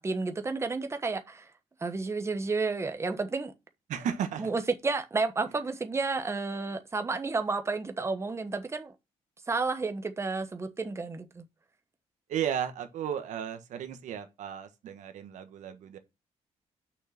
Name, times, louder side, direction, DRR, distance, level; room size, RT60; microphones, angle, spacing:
voice 1, 0.0-1.5 1.8-3.5 4.4-8.9 9.5-11.4, right 3 dB, 20° right, 1.1 m, -31 dB
voice 2, 3.9-4.5 12.3-16.0, right 9 dB, 90° right, 1.3 m, -34 dB
6.5 x 6.2 x 5.8 m
cardioid pair, 115°, 12 cm